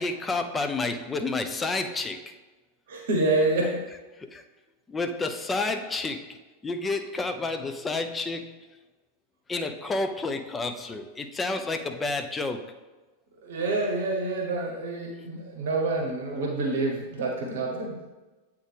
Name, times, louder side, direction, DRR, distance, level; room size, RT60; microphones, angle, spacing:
voice 1, 0.0-2.3 4.2-4.4 4.9-6.4 6.6-8.5 9.5-12.7, left 3 dB, 15° left, 6 dB, 0.5 m, -30 dB
voice 2, 2.9-3.8 13.4-18.0, right 2 dB, 60° right, 0 dB, 0.9 m, -27 dB
8.0 x 3.6 x 3.3 m, 1.2 s
figure-of-eight pair, 90°, 0 cm